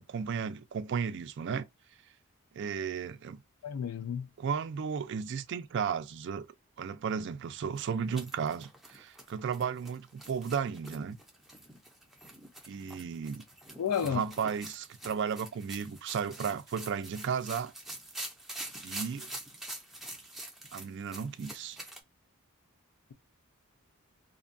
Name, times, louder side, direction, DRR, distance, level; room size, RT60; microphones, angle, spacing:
voice 1, 0.1-1.7 2.5-3.4 4.4-6.5 6.8-11.2 12.6-13.4 14.0-17.7 18.8-19.3 20.7-21.8, right 6 dB, 55° right, 0.3 m, -34 dB
voice 2, 3.6-4.3 13.8-14.2, left 8 dB, 80° left, 0.3 m, -31 dB
sound 1, 7.8-22.0, right 1 dB, ahead, 0.5 m, -46 dB
2.6 x 2.2 x 2.5 m
head